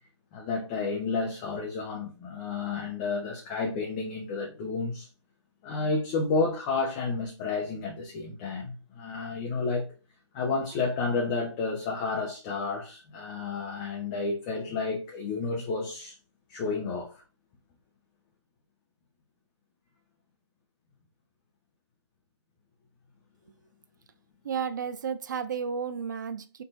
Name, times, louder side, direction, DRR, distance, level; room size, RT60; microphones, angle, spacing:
voice 1, 0.3-5.1 5.6-9.9 10.3-16.1 16.5-17.2, left 4 dB, 15° left, 0.5 m, -31 dB
voice 2, 24.4-26.6, right 6 dB, 40° right, 0.4 m, -32 dB
4.4 x 2.7 x 3.9 m
figure-of-eight pair, 145°, 15 cm